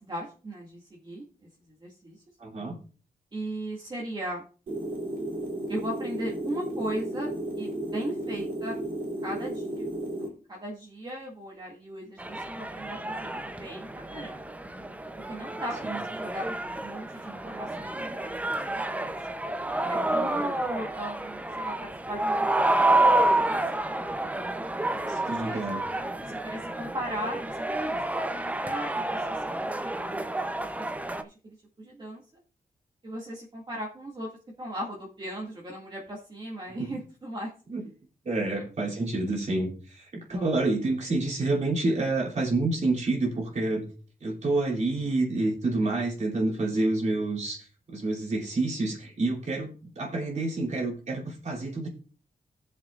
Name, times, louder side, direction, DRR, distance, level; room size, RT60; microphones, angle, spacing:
voice 1, 0.0-2.2 3.3-4.4 5.7-8.8 9.2-9.9 10.2-14.5 15.3-16.5 16.8-19.1 19.9-24.2 24.9-25.6 26.2-29.4 29.8-30.3 31.1-32.2 33.0-34.3 34.6-37.5 38.4-38.7 40.3-40.5, right 1 dB, 30° right, -4 dB, 2.2 m, -38 dB
voice 2, 2.4-2.8 15.8-16.0 25.1-25.8 36.8-36.9 37.7-37.8 38.2-43.9 44.2-51.9, right 2 dB, 45° right, -2 dB, 3.2 m, -28 dB
sound 1, 4.7-10.3, right 1 dB, 65° right, 3.7 m, -33 dB
sound 2, 12.2-31.2, right 2 dB, 10° right, 0.6 m, -29 dB
17.5 x 7.2 x 2.5 m, 0.38 s
wide cardioid pair, 150°, 16 cm